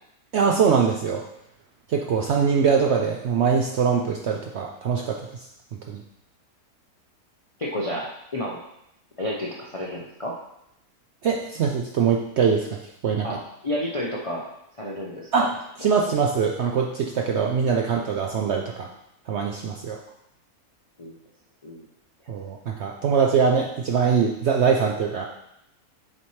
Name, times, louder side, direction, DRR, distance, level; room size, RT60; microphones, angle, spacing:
voice 1, 0.3-1.2 1.9-5.2 5.9-6.0 11.2-12.7 13.0-13.4 15.3-15.5 15.8-18.9 19.3-20.0 22.3-25.3, right 6 dB, 65° right, 1 dB, 0.6 m, -22 dB
voice 2, 7.6-8.6 9.2-10.4 13.2-14.5 14.8-15.5 21.0-21.2 21.6-21.8, left 1 dB, 45° left, -3 dB, 0.4 m, -31 dB
7.5 x 4.2 x 3.2 m, 0.80 s
omnidirectional pair, 1.6 m